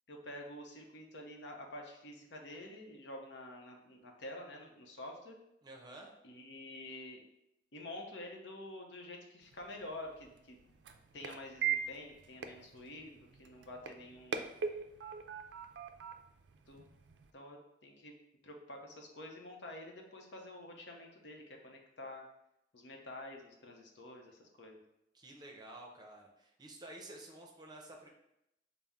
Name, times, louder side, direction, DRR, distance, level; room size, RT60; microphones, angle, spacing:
voice 1, 0.1-5.4 6.2-7.2 7.7-10.7 11.1-14.5 16.7-16.9 17.3-18.1 18.4-22.2 22.7-24.8, left 1 dB, 75° left, 1 dB, 0.7 m, -48 dB
voice 2, 5.6-6.1 25.1-28.1, right 1 dB, 25° right, 0 dB, 0.6 m, -51 dB
sound 1, 9.4-17.3, right 7 dB, 80° right, 0.4 m, -42 dB
5.5 x 2.0 x 3.5 m, 0.83 s
head